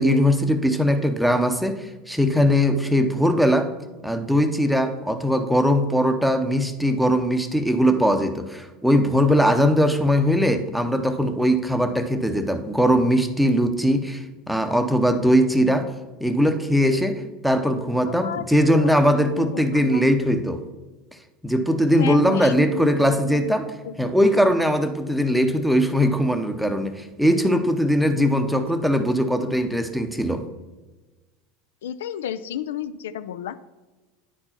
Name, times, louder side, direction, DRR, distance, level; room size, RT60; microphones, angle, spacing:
voice 1, 0.0-3.7 4.0-15.9 16.2-20.6 21.4-23.7 24.0-30.4, equal, ahead, 8 dB, 0.7 m, -20 dB
voice 2, 18.0-18.9 19.3-20.1 21.9-23.5 23.8-24.1 28.2-28.6 31.8-33.6, left 9 dB, 90° left, 14 dB, 0.3 m, -32 dB
9.7 x 4.4 x 4.4 m, 1.2 s
supercardioid pair, 110°, 0 cm